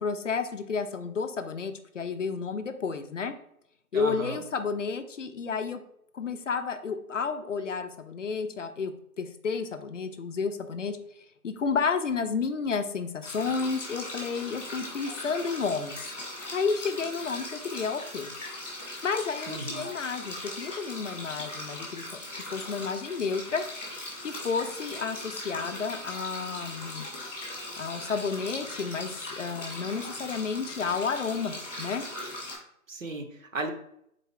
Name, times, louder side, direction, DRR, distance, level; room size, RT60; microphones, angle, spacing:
voice 1, 0.0-3.3 3.9-5.8 6.1-11.0 11.4-16.1 16.3-18.3 19.0-22.1 22.5-23.6 24.2-27.1 27.8-32.0, left 5 dB, 55° left, 9 dB, 0.5 m, -31 dB
voice 2, 3.9-4.4 19.5-19.9 32.9-33.7, right 3 dB, 60° right, 5 dB, 0.7 m, -35 dB
sound 1, 13.2-32.5, left 1 dB, 10° left, 0.7 m, -39 dB
4.0 x 3.5 x 3.3 m, 0.73 s
figure-of-eight pair, 160°, 45 cm